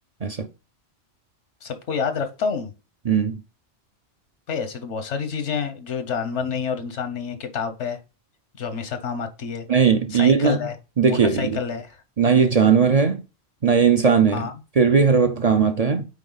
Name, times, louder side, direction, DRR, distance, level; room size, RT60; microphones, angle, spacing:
voice 1, 1.6-2.7 4.5-8.0 8.6-9.7 10.1-10.7 11.1-12.0 14.3-14.5, left 6 dB, 90° left, 1.3 m, -28 dB
voice 2, 3.1-3.4 9.7-10.7 11.0-11.6 12.2-13.2 13.6-16.1, right 6 dB, 45° right, 0.5 m, -18 dB
9.0 x 3.6 x 4.0 m
omnidirectional pair, 1.2 m